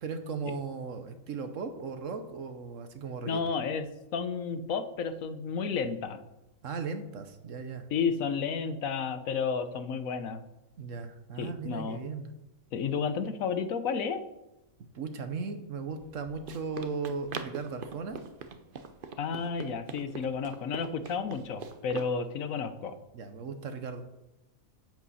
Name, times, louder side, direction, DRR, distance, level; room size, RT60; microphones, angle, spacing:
voice 1, 0.0-3.6 6.6-7.9 10.8-12.3 14.9-18.2 23.1-24.0, right 4 dB, 65° right, 8 dB, 1.2 m, -37 dB
voice 2, 3.3-3.9 4.1-6.2 7.9-10.4 11.4-12.0 12.7-14.2 19.2-23.0, left 5 dB, 75° left, 10 dB, 1.3 m, -32 dB
Run, 15.9-22.1, right 5 dB, 50° right, 0.8 m, -44 dB
10.5 x 8.4 x 4.2 m, 0.94 s
omnidirectional pair, 1.4 m